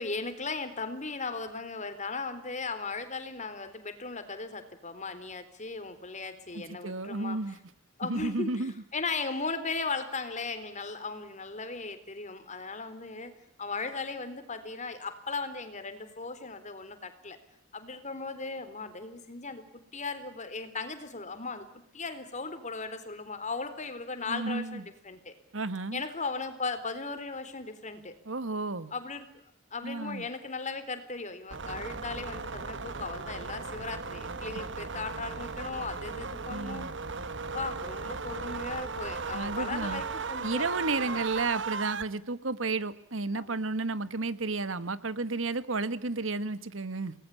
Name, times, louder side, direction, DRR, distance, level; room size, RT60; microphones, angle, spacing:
voice 1, 0.0-7.4 8.0-8.5 8.9-13.3 13.6-17.4 17.7-21.7 21.9-25.3 25.9-28.2 28.9-29.3 29.7-36.9 37.5-41.2 43.3-43.6, left 4 dB, 40° left, 10 dB, 3.9 m, -37 dB
voice 2, 6.5-7.6 8.0-8.7 24.3-24.8 25.5-26.0 28.2-28.9 29.8-30.2 36.5-36.9 39.3-40.0 40.4-47.1, right 3 dB, 80° right, 14 dB, 1.6 m, -32 dB
sound 1, 31.5-42.0, right 4 dB, 65° right, 1.4 m, -37 dB
29.0 x 20.0 x 8.5 m, 0.75 s
head